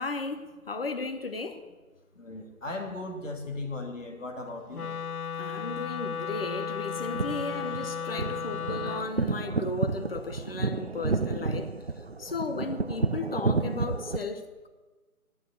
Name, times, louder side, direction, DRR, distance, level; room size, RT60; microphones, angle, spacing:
voice 1, 0.0-1.7 5.4-11.7 12.2-14.7, left 3 dB, 40° left, 1.0 m, -35 dB
voice 2, 2.2-4.9, left 2 dB, 60° left, 2.7 m, -37 dB
Wind instrument woodwind instrument, 4.7-9.1, left 6 dB, 85° left, 0.7 m, -34 dB
sound 1, 7.0-14.2, right 4 dB, 45° right, 0.5 m, -31 dB
10.5 x 9.2 x 8.1 m
figure-of-eight pair, 165°, 43 cm